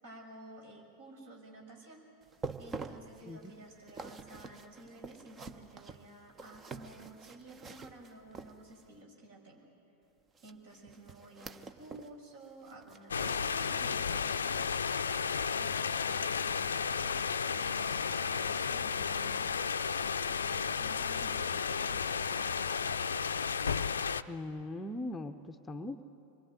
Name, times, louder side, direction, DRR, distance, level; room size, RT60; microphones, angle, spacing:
voice 1, 0.0-2.0 2.6-9.6 10.4-14.8 15.5-19.5 20.2-22.9, right 2 dB, 55° right, 1 dB, 6.2 m, -53 dB
sound 1, 2.2-9.0 10.3-12.2 12.4-14.4 14.8-15.0 15.5-15.6, right 4 dB, 20° right, 1.1 m, -47 dB
sound 2, 13.1-24.2, left 6 dB, 70° left, 0.6 m, -33 dB
voice 2, 24.3-26.0, left 1 dB, 10° left, 7 dB, 0.9 m, -40 dB
26.0 x 21.5 x 9.4 m, 2.7 s
figure-of-eight pair, 90°, 0 cm